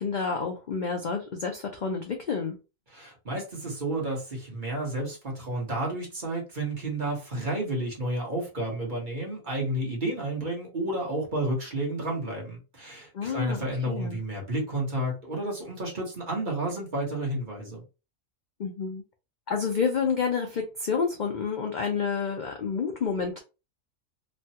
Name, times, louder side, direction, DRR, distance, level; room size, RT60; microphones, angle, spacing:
voice 1, 0.0-2.6 13.1-14.2 18.6-19.0 19.5-23.4, left 5 dB, 60° left, 0.5 m, -29 dB
voice 2, 2.9-17.8, right 1 dB, 40° right, 1.2 m, -31 dB
3.1 x 2.2 x 2.8 m
omnidirectional pair, 1.4 m